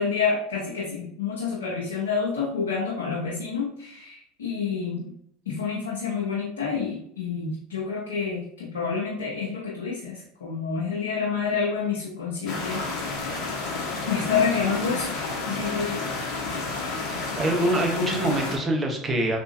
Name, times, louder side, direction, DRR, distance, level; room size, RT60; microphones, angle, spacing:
voice 1, 0.0-5.1 5.5-13.3 14.1-15.2 15.5-16.0, left 5 dB, 90° left, -6 dB, 0.8 m, -28 dB
sound 1, 12.5-18.6, left 3 dB, 60° left, 1.0 m, -31 dB
voice 2, 17.0-19.4, right 1 dB, 25° right, 1 dB, 0.9 m, -25 dB
3.5 x 2.7 x 2.7 m, 0.67 s
hypercardioid pair, 80°, 0 cm